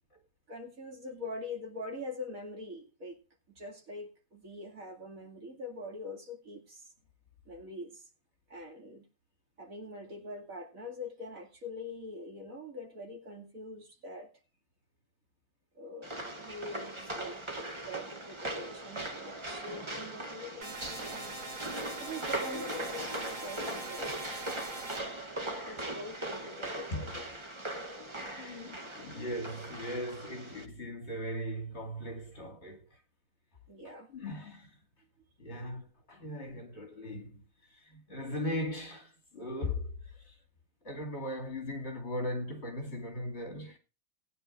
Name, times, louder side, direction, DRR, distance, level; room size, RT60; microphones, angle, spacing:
voice 1, 0.5-3.2 3.5-6.9 7.5-8.1 8.5-9.1 9.6-14.3 15.7-21.4 22.0-24.1 25.6-27.3 33.7-34.1, left 2 dB, 60° right, 2.9 m, -44 dB
sound 1, 16.0-30.6, right 1 dB, 20° right, 1.0 m, -40 dB
sound 2, 20.6-25.0, right 2 dB, 85° right, 3.4 m, -42 dB
voice 2, 28.0-33.0 33.8-34.8 35.4-40.4 40.8-43.8, left 1 dB, 45° left, 2.6 m, -39 dB
19.0 x 9.7 x 2.5 m
omnidirectional pair, 1.6 m